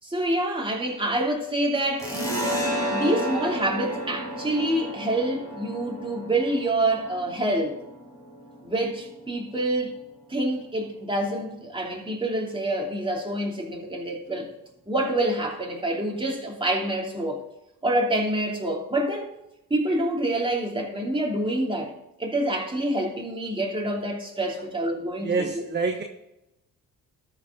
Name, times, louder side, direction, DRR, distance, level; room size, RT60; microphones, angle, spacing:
voice 1, 0.0-2.1 2.9-7.8 8.6-9.9 10.3-14.5 14.9-17.4 17.8-19.3 19.7-21.9 22.2-25.6, right 1 dB, 15° right, 2.9 m, -27 dB
sound 1, 2.0-9.2, equal, 10° left, 4.1 m, -32 dB
voice 2, 25.2-26.0, right 4 dB, 30° right, 1.1 m, -26 dB
13.0 x 5.9 x 3.8 m
cardioid pair, 70°, 35 cm